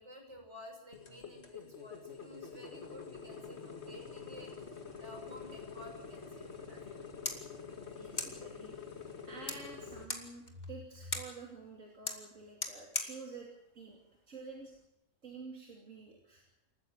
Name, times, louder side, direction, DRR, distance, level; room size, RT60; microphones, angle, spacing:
voice 1, 0.0-6.8, equal, 70° right, 3 dB, 6.6 m, -52 dB
sound 1, 0.9-10.1, left 6 dB, 60° left, 2.4 m, -47 dB
sound 2, 6.8-14.8, left 2 dB, 35° left, 2.7 m, -44 dB
voice 2, 7.9-8.7 9.2-13.5 13.8-14.0 14.3-14.7 15.2-16.4, right 3 dB, 90° right, -1 dB, 3.5 m, -49 dB
28.5 x 14.5 x 7.5 m, 0.88 s
omnidirectional pair, 1.3 m